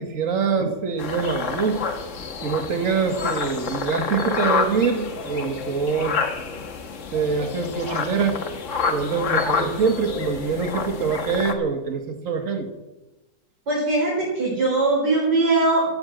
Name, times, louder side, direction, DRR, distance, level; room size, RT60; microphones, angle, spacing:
voice 1, 0.0-1.9 2.4-6.2 7.1-8.4 8.9-12.7, right 5 dB, 45° right, 6 dB, 1.7 m, -24 dB
sound 1, 1.0-11.5, left 5 dB, 45° left, 1.4 m, -28 dB
voice 2, 13.7-15.8, right 2 dB, 65° right, -6 dB, 4.8 m, -20 dB
13.0 x 8.1 x 7.8 m, 1.1 s
omnidirectional pair, 2.0 m